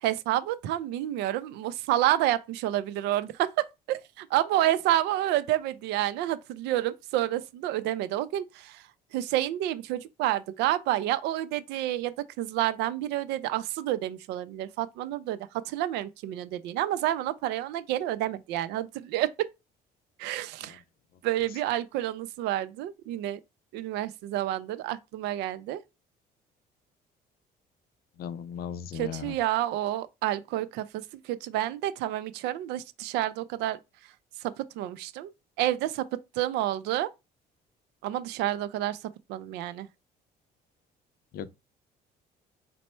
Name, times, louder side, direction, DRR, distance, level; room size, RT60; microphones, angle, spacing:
voice 1, 0.0-8.8 9.1-19.3 20.2-20.8 21.2-23.4 23.7-25.8 28.9-33.8 34.4-37.1 38.0-39.9, right 13 dB, 90° right, 0.5 m, -29 dB
voice 2, 28.2-29.3 41.3-41.5, left 8 dB, 65° left, 0.5 m, -36 dB
4.3 x 2.0 x 4.2 m
cardioid pair, 110°, 17 cm